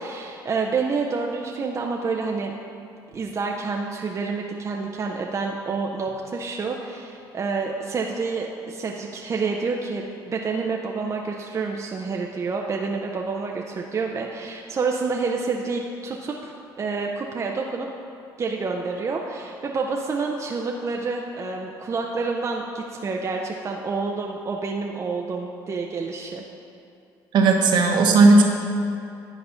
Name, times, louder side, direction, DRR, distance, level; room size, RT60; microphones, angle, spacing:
voice 1, 0.0-2.5 3.1-17.9 18.4-26.4, right 4 dB, 35° right, 1 dB, 0.6 m, -28 dB
voice 2, 27.3-28.4, right 3 dB, 65° right, 1 dB, 1.1 m, -15 dB
10.0 x 4.2 x 5.6 m, 2.5 s
supercardioid pair, 85°, 8 cm